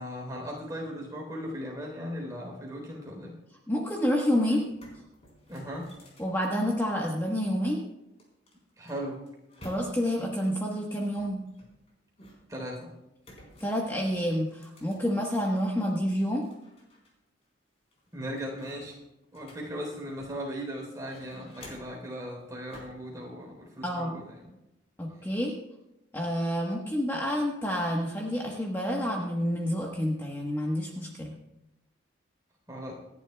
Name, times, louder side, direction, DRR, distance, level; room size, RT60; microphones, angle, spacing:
voice 1, 0.0-3.3 5.5-5.9 8.8-9.2 12.5-12.9 18.1-19.0 19.3-24.5 32.7-33.0, equal, 20° right, -1 dB, 3.7 m, -38 dB
voice 2, 3.7-4.6 6.2-7.8 9.6-11.4 13.6-16.4 23.8-24.2 25.0-25.5 26.1-31.4, equal, 10° left, -2 dB, 1.2 m, -28 dB
sound 1, 4.2-4.3 4.6-7.3 8.2-10.2 11.0-12.6 13.2-15.6 16.0-17.1 17.4-17.5 17.9-20.5 20.9-22.1 22.7-23.0, equal, 35° left, 4.2 m, -52 dB
26.5 x 11.0 x 2.3 m, 0.91 s
head